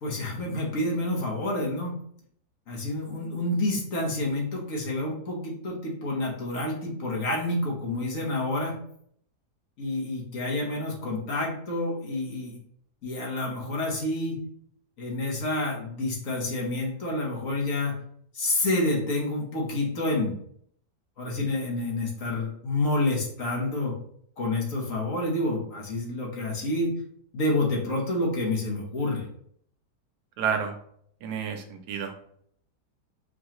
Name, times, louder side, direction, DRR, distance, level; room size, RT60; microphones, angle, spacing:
voice 1, 0.0-2.0 2.7-8.8 9.8-12.6 13.0-14.4 15.0-18.0 18.3-20.4 21.2-24.0 24.4-26.9 27.3-29.3, left 2 dB, 60° left, -2 dB, 1.3 m, -28 dB
voice 2, 30.4-30.7 31.2-32.1, right 7 dB, 85° right, 6 dB, 1.2 m, -30 dB
4.7 x 2.3 x 2.9 m, 0.65 s
omnidirectional pair, 1.7 m